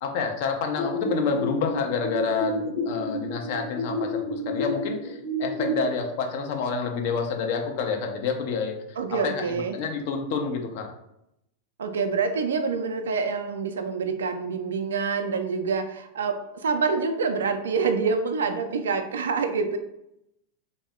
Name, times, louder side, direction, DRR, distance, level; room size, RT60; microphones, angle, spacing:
voice 1, 0.0-8.7 9.2-9.3 9.7-10.9, left 5 dB, 50° left, 3 dB, 0.5 m, -28 dB
sound 1, 0.8-5.8, equal, 5° right, 0.7 m, -30 dB
voice 2, 9.0-9.8 11.8-19.8, right 5 dB, 65° right, 8 dB, 0.3 m, -26 dB
3.3 x 2.1 x 3.5 m, 0.81 s
figure-of-eight pair, 90°, 0 cm